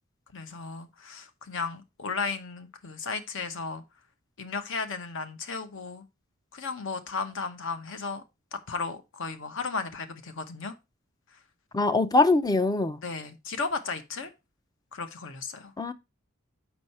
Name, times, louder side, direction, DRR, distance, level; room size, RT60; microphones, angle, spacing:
voice 1, 0.3-3.8 4.4-6.0 6.5-8.2 8.5-10.7 13.0-14.3 14.9-15.7, left 4 dB, 60° left, 0.9 m, -34 dB
voice 2, 11.7-13.0 15.8-15.9, left 2 dB, 20° left, 0.5 m, -23 dB
6.3 x 5.5 x 4.2 m
head